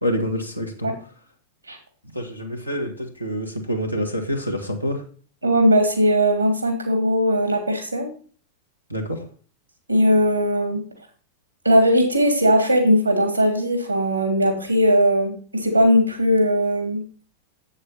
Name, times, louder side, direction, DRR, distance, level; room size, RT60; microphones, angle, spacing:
voice 1, 0.0-0.9 2.1-5.0 8.9-9.2, equal, 90° left, 1 dB, 1.8 m, -27 dB
voice 2, 5.4-8.1 9.9-10.8 11.6-17.0, equal, 85° right, 3 dB, 2.9 m, -19 dB
8.4 x 7.2 x 4.3 m, 0.41 s
figure-of-eight pair, 90°, 0 cm